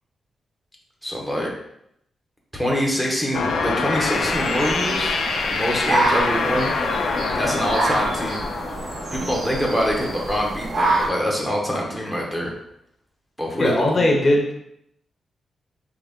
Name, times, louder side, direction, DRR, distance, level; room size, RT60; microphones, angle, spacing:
voice 1, 1.0-1.5 2.5-5.1 5.5-6.7 7.3-8.5 9.1-12.5 13.4-14.0, equal, 5° right, -2 dB, 0.8 m, -25 dB
sound 1, 3.3-9.9, left 4 dB, 75° left, 0.5 m, -25 dB
sound 2, 4.1-11.1, right 2 dB, 55° right, 0.7 m, -27 dB
voice 2, 13.6-14.5, left 1 dB, 35° left, 0 dB, 0.7 m, -18 dB
3.9 x 3.1 x 3.5 m, 0.76 s
wide cardioid pair, 155°, 0 cm